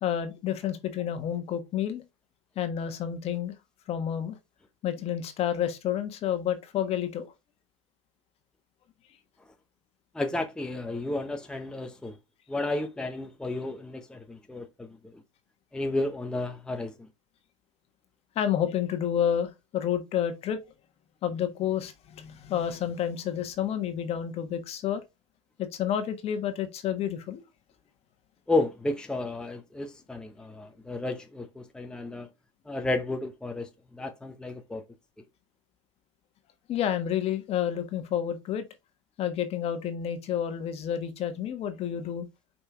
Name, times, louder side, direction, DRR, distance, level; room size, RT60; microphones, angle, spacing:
voice 1, 0.0-2.0 2.6-3.5 3.9-4.4 4.8-7.3 18.3-20.7 21.2-25.0 25.6-27.4 36.7-38.7 39.2-42.3, left 9 dB, 40° left, 1.4 m, -30 dB
voice 2, 10.1-12.2 12.5-15.2 15.7-17.1 28.5-32.3 32.6-34.8, left 2 dB, 5° left, 0.8 m, -32 dB
5.3 x 4.3 x 4.3 m
hypercardioid pair, 100°, 15 cm